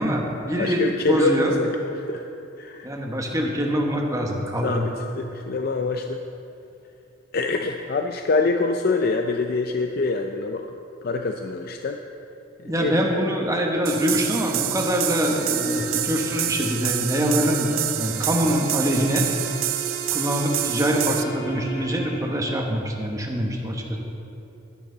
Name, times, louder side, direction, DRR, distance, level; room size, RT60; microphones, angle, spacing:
voice 1, 0.0-1.6 2.8-4.9 12.6-19.3 20.1-24.0, equal, 15° right, 0 dB, 1.2 m, -24 dB
voice 2, 0.6-2.2 2.6-2.9 4.6-6.2 7.3-10.7 11.0-12.0 12.6-13.0, left 3 dB, 50° left, 4 dB, 0.4 m, -25 dB
sound 1, 13.9-21.2, right 13 dB, 90° right, 0.5 m, -28 dB
sound 2, 15.3-22.6, right 2 dB, 75° left, 1.6 m, -37 dB
12.0 x 12.0 x 3.9 m, 2.8 s
head